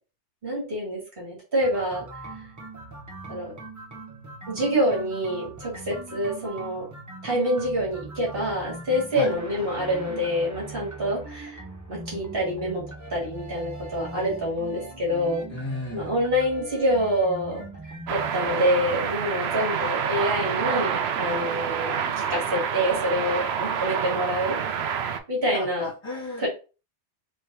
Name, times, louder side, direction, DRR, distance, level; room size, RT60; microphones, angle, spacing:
voice 1, 0.4-2.1 3.3-3.5 4.5-6.9 7.2-11.6 11.9-12.8 13.1-15.4 15.9-17.6 18.1-24.6 25.3-25.8 26.4-26.5, equal, 50° right, -4 dB, 2.2 m, -26 dB
sound 1, 1.6-18.5, right 2 dB, 20° right, 0.7 m, -41 dB
voice 2, 15.5-16.1 25.5-26.5, left 2 dB, 25° left, -4 dB, 2.1 m, -33 dB
sound 2, 18.1-25.2, right 7 dB, 70° right, 0.8 m, -28 dB
3.8 x 3.4 x 2.8 m, 0.32 s
omnidirectional pair, 1.2 m